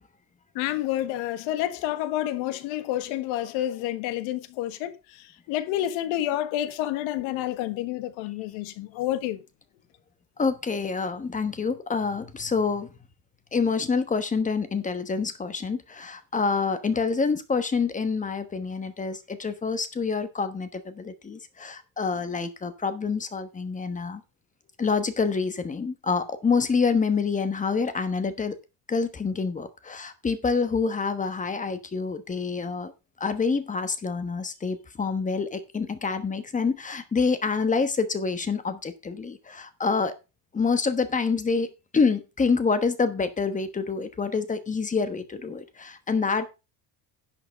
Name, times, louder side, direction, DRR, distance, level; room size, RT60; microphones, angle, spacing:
voice 1, 0.5-4.9 5.5-9.4, left 13 dB, 75° left, 1.5 m, -29 dB
voice 2, 10.4-12.9 13.5-24.2 24.8-28.6 28.9-32.9 33.2-40.1 40.5-41.7 41.9-46.5, left 5 dB, 15° left, 1.1 m, -27 dB
11.0 x 5.9 x 5.2 m
cardioid pair, 150°, 47 cm